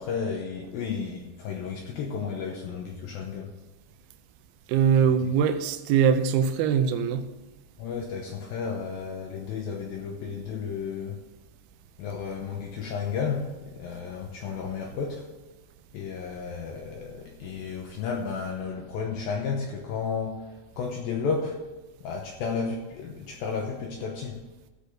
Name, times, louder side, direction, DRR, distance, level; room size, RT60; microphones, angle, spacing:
voice 1, 0.0-3.5 5.0-5.1 7.8-11.2 12.0-15.3 15.9-21.7 22.0-24.4, left 5 dB, 75° left, 2.2 m, -33 dB
voice 2, 4.7-7.3, right 7 dB, 80° right, 2.3 m, -22 dB
15.5 x 5.3 x 6.4 m
omnidirectional pair, 5.2 m